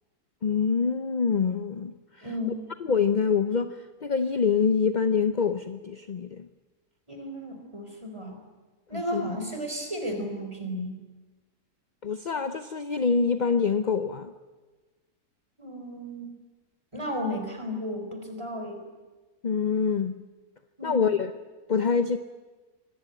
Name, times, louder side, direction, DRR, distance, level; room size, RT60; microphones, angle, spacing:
voice 1, 0.4-2.3 2.8-6.5 8.9-9.2 12.0-14.3 19.4-20.2 20.8-21.3 21.7-22.2, left 5 dB, 40° left, 10 dB, 0.6 m, -25 dB
voice 2, 2.2-2.6 7.1-8.4 8.9-11.0 15.6-16.3 16.9-18.8 20.8-21.1, equal, 15° right, 4 dB, 4.3 m, -33 dB
25.0 x 18.5 x 9.1 m, 1.3 s
omnidirectional pair, 1.7 m